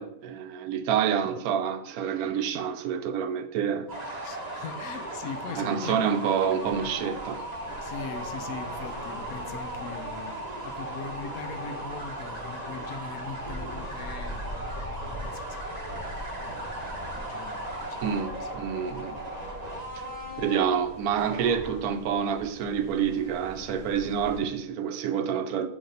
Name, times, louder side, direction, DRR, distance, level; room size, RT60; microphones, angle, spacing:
voice 1, 0.0-4.3 5.6-7.5 18.0-19.2 20.4-25.7, right 8 dB, 75° right, 1.0 m, -28 dB
sound 1, 3.9-22.0, right 1 dB, 30° right, 1.0 m, -37 dB
voice 2, 4.2-6.0 7.8-16.7 17.1-18.1 18.4-18.5, left 5 dB, 75° left, 1.1 m, -41 dB
sound 2, 6.6-24.4, equal, 40° left, 1.2 m, -44 dB
6.5 x 3.3 x 5.2 m
omnidirectional pair, 1.6 m